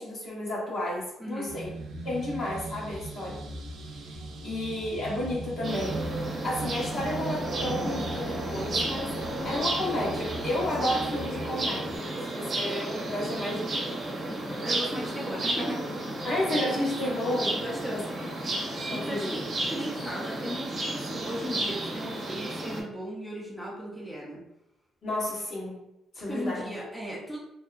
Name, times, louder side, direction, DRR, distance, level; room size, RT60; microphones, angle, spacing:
voice 1, 0.0-1.7 2.0-3.4 4.4-6.1 6.4-9.2 9.4-13.9 16.2-17.6 17.9-18.6 18.9-19.3 25.0-25.8 26.1-26.8, left 1 dB, 60° left, -6 dB, 1.1 m, -32 dB
voice 2, 1.2-1.5 14.6-15.9 17.5-18.0 18.9-24.4 26.3-27.4, equal, 5° left, -4 dB, 0.6 m, -36 dB
sound 1, 1.5-12.0, right 2 dB, 85° right, 0.5 m, -38 dB
sound 2, 5.6-22.8, right 1 dB, 50° right, 0.8 m, -33 dB
2.6 x 2.1 x 2.4 m, 0.87 s
cardioid pair, 90°, 0 cm